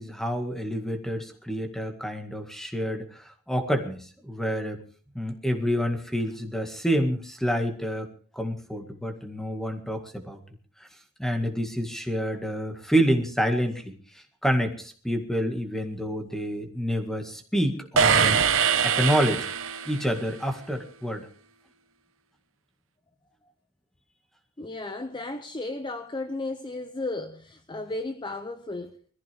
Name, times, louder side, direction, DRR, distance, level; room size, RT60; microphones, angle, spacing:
voice 1, 0.0-4.8 5.2-8.1 8.3-10.4 11.2-14.0 14.4-18.4 18.8-19.5 19.9-21.3, equal, ahead, 1.9 m, -28 dB
sound 1, 18.0-20.2, right 6 dB, 70° right, 1.2 m, -23 dB
voice 2, 24.6-29.0, left 2 dB, 20° left, 0.7 m, -34 dB
21.5 x 14.5 x 3.5 m
head